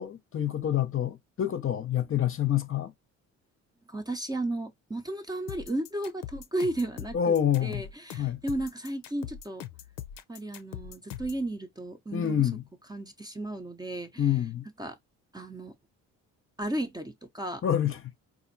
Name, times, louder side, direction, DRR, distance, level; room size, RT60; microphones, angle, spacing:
voice 1, 0.0-2.9 7.1-7.8 8.2-8.4 12.1-12.6 14.2-14.7 17.6-18.1, left 10 dB, 40° left, 0.7 m, -27 dB
voice 2, 3.9-7.3 7.6-9.6 10.3-12.5 12.9-14.3 14.8-15.0 15.3-15.7 16.6-17.6, right 1 dB, 10° right, 0.6 m, -34 dB
sound 1, 5.5-11.5, left 11 dB, 85° left, 0.6 m, -42 dB
4.1 x 2.6 x 2.6 m
cardioid pair, 90°, 32 cm